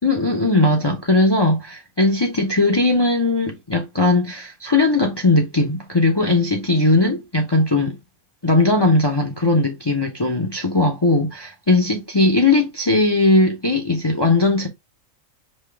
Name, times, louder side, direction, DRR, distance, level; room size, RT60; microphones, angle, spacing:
voice 1, 0.0-8.0 8.4-14.7, left 2 dB, 25° left, 0.7 m, -18 dB
5.4 x 2.9 x 3.4 m
omnidirectional pair, 1.4 m